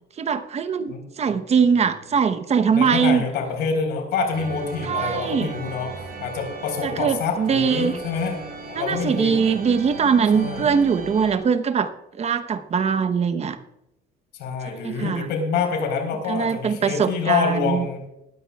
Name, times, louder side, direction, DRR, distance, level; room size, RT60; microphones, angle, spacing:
voice 1, 0.2-3.2 4.9-5.5 6.8-7.9 8.8-11.9 12.2-13.6 14.8-15.3 16.3-17.9, right 6 dB, 40° right, 10 dB, 1.0 m, -21 dB
voice 2, 0.9-1.4 2.7-5.9 6.2-9.6 10.3-10.7 14.4-18.1, left 5 dB, 80° left, 3 dB, 4.4 m, -27 dB
sound 1, 4.3-11.4, right 5 dB, 70° right, 4.1 m, -36 dB
19.0 x 13.0 x 2.4 m, 0.86 s
cardioid pair, 110°, 17 cm